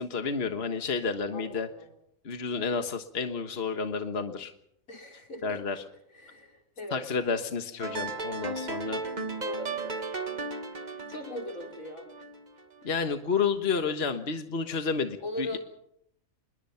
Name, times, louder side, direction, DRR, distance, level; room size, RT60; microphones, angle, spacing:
voice 1, 0.0-1.7 2.2-4.5 5.4-5.8 6.9-9.0 12.8-15.6, left 5 dB, 50° left, 6 dB, 1.6 m, -30 dB
voice 2, 1.3-1.9 4.9-5.8 6.1-7.1 9.4-10.1 11.1-12.0 15.2-15.6, left 1 dB, 80° left, 2 dB, 5.4 m, -39 dB
sound 1, 7.8-12.9, right 3 dB, 35° right, 1.5 m, -36 dB
26.5 x 21.5 x 5.8 m, 0.73 s
omnidirectional pair, 1.4 m